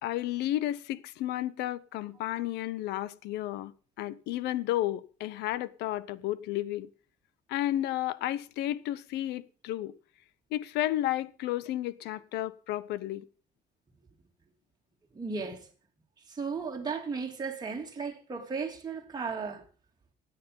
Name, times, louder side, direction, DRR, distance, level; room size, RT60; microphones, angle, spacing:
voice 1, 0.0-3.7 4.0-6.9 7.5-9.9 10.5-13.2, left 14 dB, 85° left, 0.8 m, -32 dB
voice 2, 15.1-15.6 16.3-19.6, right 5 dB, 25° right, 2.9 m, -35 dB
13.5 x 9.5 x 5.4 m
cardioid pair, 110°, 17 cm